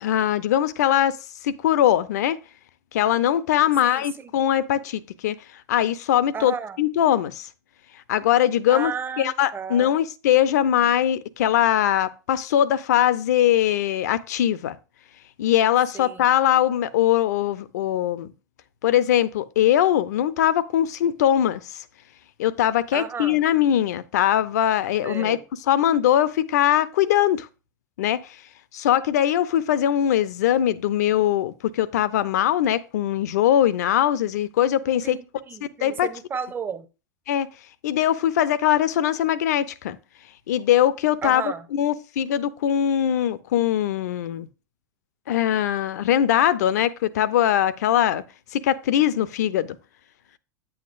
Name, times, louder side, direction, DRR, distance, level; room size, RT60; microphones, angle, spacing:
voice 1, 0.0-1.2 1.4-2.4 2.9-5.4 5.7-7.5 8.1-8.9 9.2-14.8 15.4-18.3 18.8-21.8 22.4-25.4 25.7-27.5 28.0-28.2 28.7-35.2 35.8-36.1 37.3-37.5 37.8-40.0 40.5-44.5 45.3-48.2 48.5-49.8, left 11 dB, 60° left, 0.6 m, -21 dB
voice 2, 3.8-4.3 6.3-6.8 8.7-9.9 15.9-16.2 22.9-23.4 25.0-25.4 35.0-36.9 41.2-41.7, right 6 dB, 20° right, 0.8 m, -33 dB
9.6 x 7.9 x 2.5 m
figure-of-eight pair, 85°, 10 cm